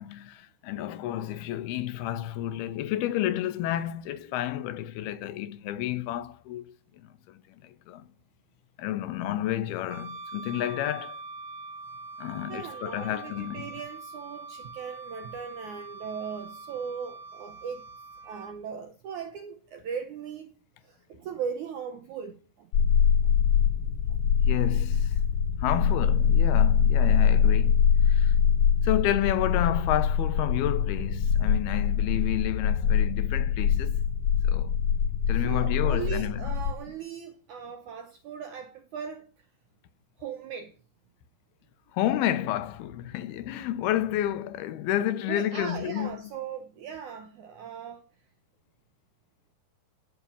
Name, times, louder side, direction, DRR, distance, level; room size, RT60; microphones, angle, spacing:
voice 1, 0.0-8.0 8.8-11.2 12.2-13.7 24.5-25.2 25.6-28.4 28.8-34.0 34.4-34.8 35.3-36.4 41.9-46.2, left 12 dB, 75° left, 2.7 m, -30 dB
Wind instrument woodwind instrument, 9.9-18.5, right 3 dB, 55° right, 2.4 m, -43 dB
voice 2, 12.5-17.9 18.2-20.5 20.8-22.7 24.1-24.2 25.7-25.9 35.3-39.3 40.2-40.7 45.3-48.1, right 7 dB, 70° right, 1.9 m, -38 dB
sound 1, 22.7-36.7, left 7 dB, 60° left, 2.5 m, -23 dB
16.5 x 6.2 x 8.4 m
omnidirectional pair, 4.7 m